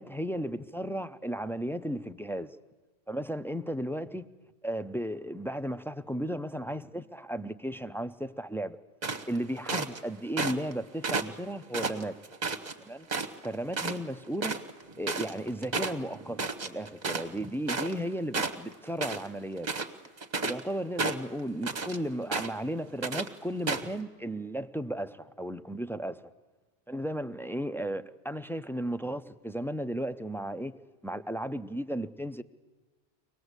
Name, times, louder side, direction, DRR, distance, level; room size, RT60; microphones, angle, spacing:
voice 1, 0.0-2.6 3.1-4.3 4.6-8.8 9.3-12.2 12.8-13.1 13.4-14.6 15.0-19.7 20.4-26.2 26.9-30.8 31.0-32.4, equal, 5° left, 0.4 m, -35 dB
sound 1, 9.0-10.0 10.4-10.7 11.0-12.7 13.1-13.5 13.7-14.0 14.2-18.1 18.3-19.3 19.6-20.6 21.0-22.0 22.3-22.7 23.0-23.3 23.7-23.9, right 4 dB, 40° right, 1.3 m, -32 dB
24.0 x 19.0 x 8.1 m
omnidirectional pair, 1.1 m